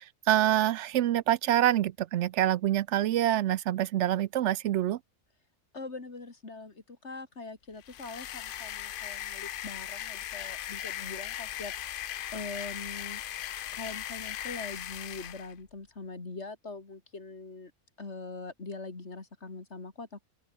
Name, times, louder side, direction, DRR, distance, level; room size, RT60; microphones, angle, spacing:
voice 1, 0.0-5.0, right 12 dB, 65° right, 0.8 m, -26 dB
voice 2, 5.7-13.2 13.7-17.7 18.0-20.2, left 3 dB, 55° left, 3.1 m, -42 dB
sound 1, 7.8-15.5, left 12 dB, 75° left, 0.5 m, -38 dB
open air
omnidirectional pair, 1.4 m